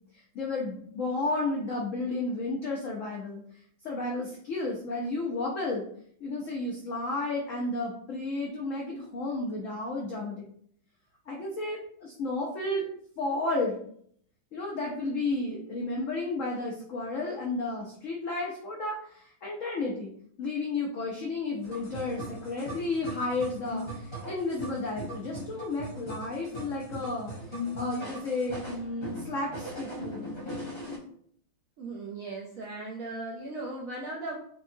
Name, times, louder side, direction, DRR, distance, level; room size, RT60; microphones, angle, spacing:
voice 1, 0.3-3.4 3.8-5.8 6.2-10.4 11.3-12.8 13.2-13.8 14.5-20.1 20.4-27.3 27.8-30.4, left 2 dB, 80° left, -2 dB, 0.7 m, -32 dB
sound 1, 21.6-31.0, left 1 dB, 20° left, 0.7 m, -39 dB
voice 2, 31.8-34.4, right 2 dB, 75° right, -2 dB, 0.7 m, -37 dB
4.4 x 2.7 x 2.6 m, 0.64 s
omnidirectional pair, 2.1 m